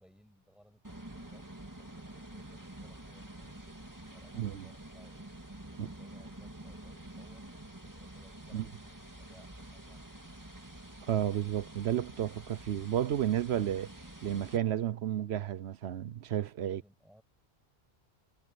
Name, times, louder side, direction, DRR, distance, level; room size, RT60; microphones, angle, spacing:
voice 1, 0.0-5.3 5.7-10.4 16.6-17.2, equal, ahead, 7.2 m, -63 dB
sound 1, 0.8-14.6, right 1 dB, 15° right, 2.1 m, -48 dB
voice 2, 4.3-4.7 5.8-5.9 8.5-8.7 11.1-13.9 14.2-16.8, right 10 dB, 70° right, 1.0 m, -32 dB
omnidirectional pair, 1.1 m